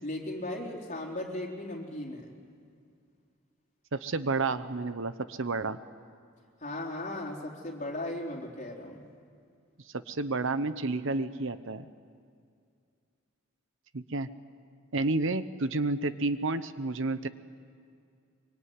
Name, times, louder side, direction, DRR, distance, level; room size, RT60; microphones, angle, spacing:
voice 1, 0.0-2.3 6.6-9.0, left 1 dB, 35° left, -1 dB, 4.0 m, -37 dB
voice 2, 3.9-5.8 9.9-11.9 13.9-14.3 14.9-17.3, right 3 dB, 65° right, 12 dB, 1.0 m, -30 dB
24.5 x 24.0 x 9.6 m, 2.3 s
head